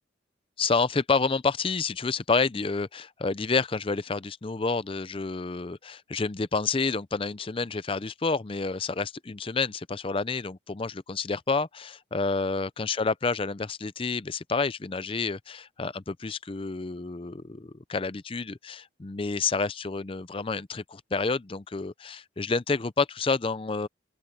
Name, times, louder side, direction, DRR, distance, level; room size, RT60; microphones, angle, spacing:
voice 1, 0.6-23.9, left 4 dB, 30° left, 0.5 m, -29 dB
open air
head